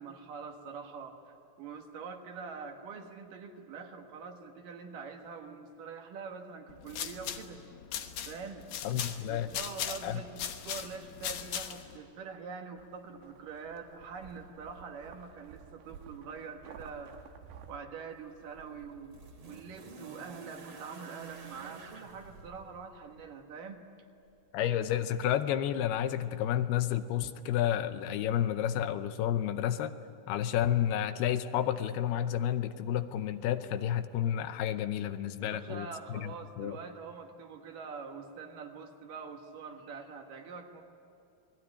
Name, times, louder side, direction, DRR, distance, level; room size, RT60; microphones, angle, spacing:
voice 1, 0.0-7.6 8.3-8.7 9.3-17.2 17.7-19.2 19.5-23.8 35.4-40.8, right 5 dB, 60° right, 4 dB, 2.9 m, -44 dB
sound 1, 6.7-12.0, left 9 dB, 65° left, 2.3 m, -39 dB
voice 2, 8.8-9.5 10.0-10.2 24.5-29.9 30.3-36.3 36.6-36.8, left 10 dB, 80° left, 11 dB, 2.7 m, -31 dB
sound 2, 12.8-17.8, right 7 dB, 80° right, 3.4 m, -52 dB
sound 3, 18.1-23.3 24.4-24.5, right 4 dB, 45° right, 3.2 m, -50 dB
28.5 x 21.0 x 9.9 m, 2.6 s
omnidirectional pair, 4.7 m